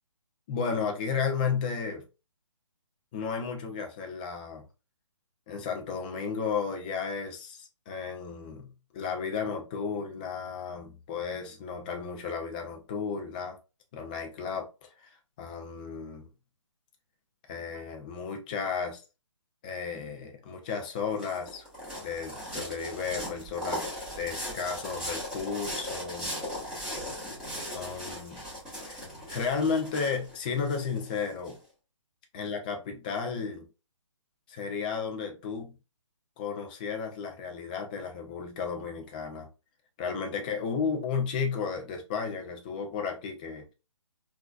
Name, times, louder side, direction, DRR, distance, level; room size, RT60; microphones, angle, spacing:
voice 1, 0.5-2.1 3.1-4.6 5.5-8.7 8.9-13.6 13.9-16.3 17.5-19.0 19.6-21.7 22.0-23.8 24.1-26.4 27.7-28.4 28.9-31.6 32.3-33.6 34.5-35.7 36.4-39.5 40.0-43.7, left 5 dB, 15° left, 0.3 m, -33 dB
sound 1, 20.7-31.5, equal, 5° right, 1.5 m, -38 dB
3.7 x 2.5 x 2.3 m
hypercardioid pair, 155°, 16 cm